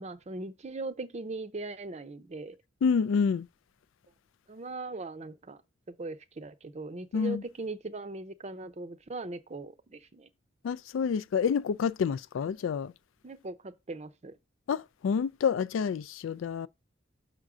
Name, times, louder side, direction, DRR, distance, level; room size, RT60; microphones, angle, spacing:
voice 1, 0.0-2.6 4.5-5.6 5.9-10.3 13.2-14.3, right 2 dB, 35° right, 0.6 m, -39 dB
voice 2, 2.8-3.5 7.1-7.4 10.6-12.9 14.7-16.7, left 6 dB, 65° left, 0.3 m, -28 dB
6.5 x 3.7 x 6.0 m
head